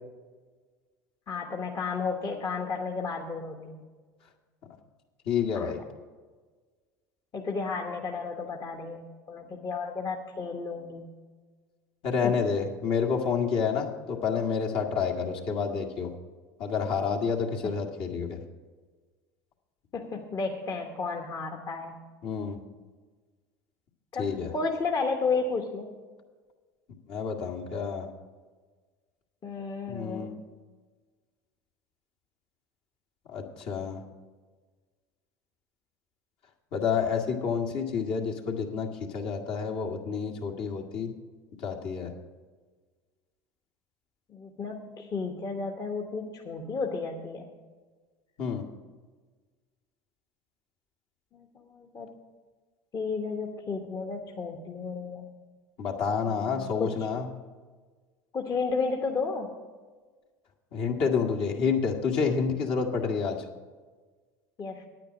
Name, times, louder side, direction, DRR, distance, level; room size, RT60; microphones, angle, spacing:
voice 1, 1.3-3.8 5.5-5.7 7.3-11.1 12.2-12.4 17.6-17.7 19.9-22.0 24.1-25.9 29.4-30.6 44.3-47.5 51.3-52.1 52.9-55.3 56.2-57.0 58.3-59.6 64.6-64.8, left 4 dB, 35° left, 2 dB, 1.2 m, -33 dB
voice 2, 5.3-5.8 12.0-16.1 16.6-18.4 22.2-22.6 24.2-24.5 27.1-28.1 29.9-30.4 33.3-34.0 36.7-38.9 39.1-41.1 41.6-42.1 48.4-48.6 55.8-57.3 60.7-63.4, left 6 dB, 55° left, 2 dB, 1.7 m, -29 dB
9.5 x 9.0 x 6.2 m, 1.4 s
hypercardioid pair, 80°, 10 cm